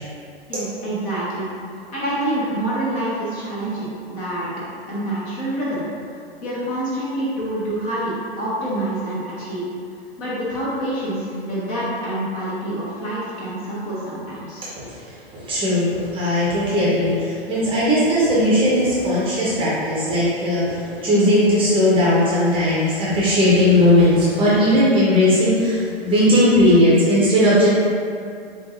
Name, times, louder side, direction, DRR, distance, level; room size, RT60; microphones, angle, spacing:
voice 1, 0.5-1.5 1.9-4.5 4.9-5.8 6.4-9.6 10.2-14.7, right 1 dB, 25° left, -8 dB, 1.4 m, -26 dB
voice 2, 14.7-27.7, left 1 dB, 15° right, -8 dB, 1.0 m, -18 dB
7.2 x 2.6 x 2.6 m, 2.4 s
figure-of-eight pair, 110°, 31 cm